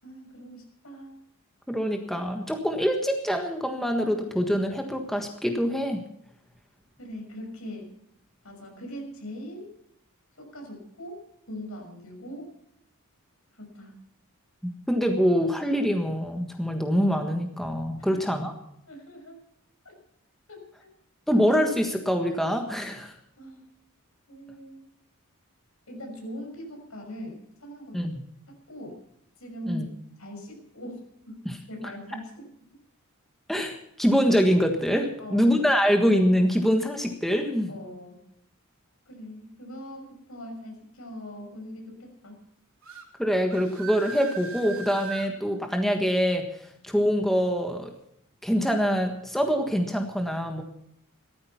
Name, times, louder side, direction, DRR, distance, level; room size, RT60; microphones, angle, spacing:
voice 1, 0.0-1.2 7.0-7.9 8.4-9.7 10.4-12.5 13.6-14.0 18.0-18.2 18.9-19.4 20.5-20.9 23.4-23.7 24.3-24.9 25.9-28.1 28.5-29.0 29.4-29.9 30.2-32.5 35.2-35.7 37.7-38.2 39.1-42.4, equal, 70° left, 3 dB, 6.1 m, -41 dB
voice 2, 1.7-6.0 14.9-18.5 21.3-23.1 27.9-28.1 29.7-29.8 31.4-31.5 31.8-31.9 33.5-37.7 43.2-46.5 46.8-47.9 48.4-50.6, equal, ahead, 4 dB, 1.5 m, -24 dB
sound 1, 42.8-43.1 43.5-45.3, right 5 dB, 65° right, 3.2 m, -39 dB
17.0 x 13.5 x 5.7 m, 0.76 s
head